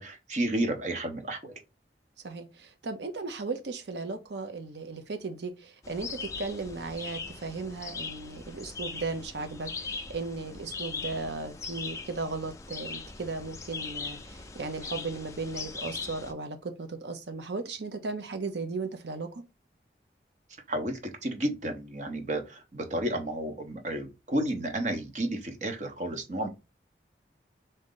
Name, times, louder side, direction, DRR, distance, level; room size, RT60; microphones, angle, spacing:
voice 1, 0.0-1.6 20.7-26.5, right 1 dB, 45° right, 0.9 m, -32 dB
voice 2, 2.2-19.4, right 3 dB, 75° right, 0.7 m, -36 dB
sound 1, 5.8-16.3, left 4 dB, 15° left, 0.4 m, -40 dB
3.7 x 2.7 x 3.8 m
head